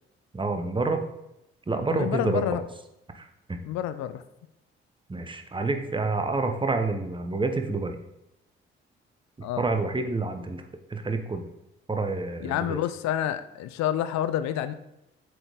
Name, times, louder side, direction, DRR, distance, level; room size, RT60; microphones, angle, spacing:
voice 1, 0.3-1.0 1.7-2.4 3.1-3.6 5.1-8.0 9.6-10.6 10.9-11.4 11.9-12.8, right 3 dB, 15° right, 6 dB, 0.9 m, -28 dB
voice 2, 1.9-2.6 3.6-4.2 9.4-9.7 12.4-14.7, left 11 dB, 65° left, 12 dB, 0.5 m, -28 dB
7.6 x 4.0 x 3.5 m, 0.87 s
hypercardioid pair, 45°, 30 cm